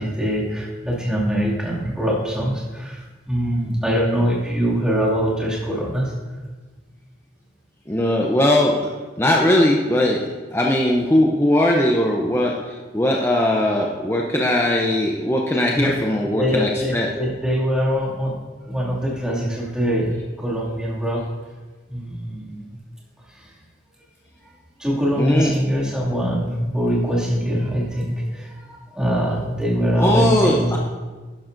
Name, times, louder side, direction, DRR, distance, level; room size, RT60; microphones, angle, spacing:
voice 1, 0.0-6.1 15.8-16.0 16.4-18.3 18.7-21.3 21.9-22.8 23.3-23.5 24.8-30.8, equal, 5° right, -6 dB, 2.3 m, -23 dB
voice 2, 7.9-8.9 9.2-10.2 10.5-17.1 25.2-25.5 30.0-30.8, left 1 dB, 15° left, -1 dB, 0.6 m, -19 dB
12.0 x 10.5 x 2.6 m, 1.3 s
head